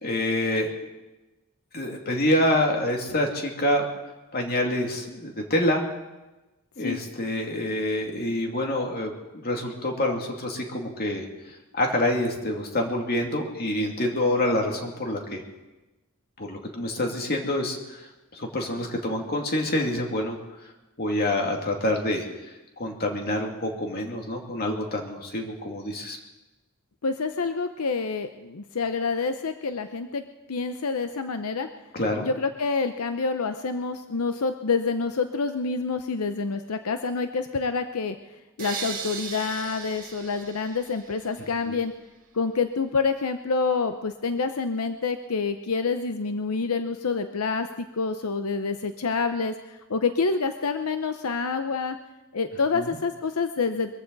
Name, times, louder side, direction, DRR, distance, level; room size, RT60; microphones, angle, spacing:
voice 1, 0.0-0.7 1.7-3.9 4.3-5.8 6.8-9.1 9.4-11.2 11.7-15.4 16.4-17.8 18.3-20.4 21.0-22.3 22.8-26.2 31.9-32.3 41.7-41.8 52.7-52.9, left 1 dB, 45° left, 1 dB, 2.5 m, -26 dB
voice 2, 27.0-30.2 30.5-31.7 32.2-38.2 38.6-41.9 42.3-52.0 52.3-53.9, left 4 dB, 85° left, 8 dB, 0.7 m, -27 dB
sound 1, 38.6-41.6, right 6 dB, 40° right, 2.1 m, -38 dB
23.0 x 15.0 x 4.0 m, 1.1 s
head